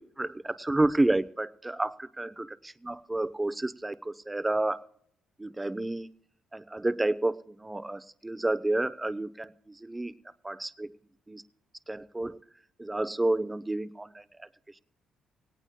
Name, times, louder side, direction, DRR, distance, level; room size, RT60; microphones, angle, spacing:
voice 1, 0.0-4.8 5.4-6.1 6.5-10.1 10.4-10.9 11.3-11.4 11.9-12.4 12.8-14.5, right 2 dB, 15° right, 14 dB, 0.7 m, -30 dB
18.5 x 18.5 x 2.2 m, 0.66 s
cardioid pair, 90°, 0 cm